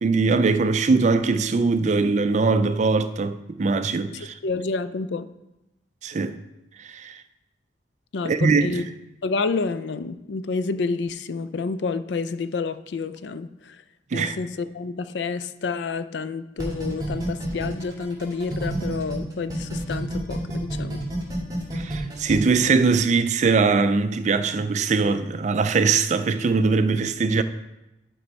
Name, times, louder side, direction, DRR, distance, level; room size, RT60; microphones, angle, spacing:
voice 1, 0.0-4.3 6.0-6.4 6.8-7.2 8.2-8.8 14.1-14.4 21.7-27.4, right 4 dB, 40° right, 0.4 m, -21 dB
voice 2, 4.1-5.3 8.1-8.8 9.2-13.8 14.1-21.0, left 4 dB, 75° left, 0.4 m, -29 dB
sound 1, 16.6-19.2 19.5-22.4, right 1 dB, 20° right, 2.1 m, -30 dB
11.5 x 4.5 x 4.0 m
head